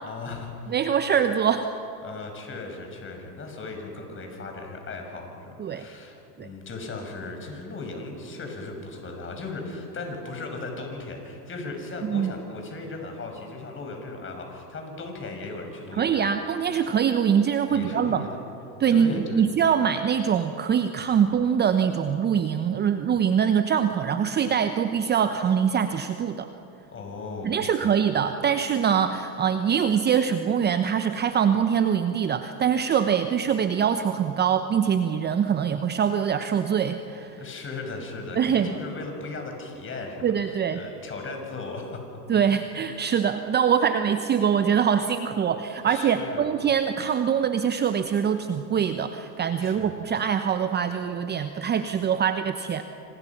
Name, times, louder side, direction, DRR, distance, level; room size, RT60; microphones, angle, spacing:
voice 1, 0.0-0.7 2.0-16.3 17.7-18.5 18.9-19.5 26.9-27.9 37.4-42.2 45.8-46.5 49.6-50.1, left 3 dB, 25° left, 3 dB, 6.1 m, -37 dB
voice 2, 0.7-1.7 5.6-5.8 6.4-6.5 12.0-12.3 15.9-18.3 18.8-26.5 27.4-37.4 38.4-38.7 40.2-40.8 42.3-52.8, right 8 dB, 20° right, 9 dB, 0.9 m, -23 dB
27.0 x 26.5 x 6.0 m, 2.8 s
hypercardioid pair, 105°, 50 cm